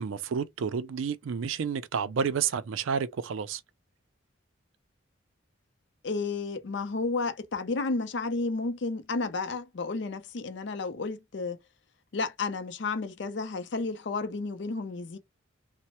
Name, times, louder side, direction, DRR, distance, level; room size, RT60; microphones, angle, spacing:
voice 1, 0.0-3.6, right 6 dB, 80° right, 0.4 m, -30 dB
voice 2, 6.0-11.6 12.1-15.2, left 3 dB, 60° left, 0.5 m, -32 dB
3.1 x 2.1 x 2.8 m
head